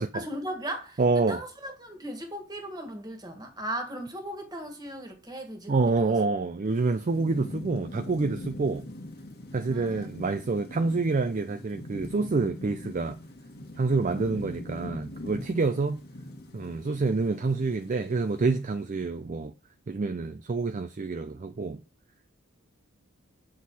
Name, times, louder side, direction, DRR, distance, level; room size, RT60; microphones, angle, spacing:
voice 1, 0.1-6.1 9.6-10.1 14.2-14.4, right 1 dB, 20° right, 1.7 m, -37 dB
voice 2, 1.0-1.4 5.7-8.9 9.5-13.2 13.8-16.0 16.5-19.5 19.9-21.8, right 3 dB, 35° right, 0.4 m, -27 dB
Thunderstorm / Rain, 6.7-18.9, left 1 dB, 45° left, 1.3 m, -42 dB
7.7 x 6.4 x 4.1 m
head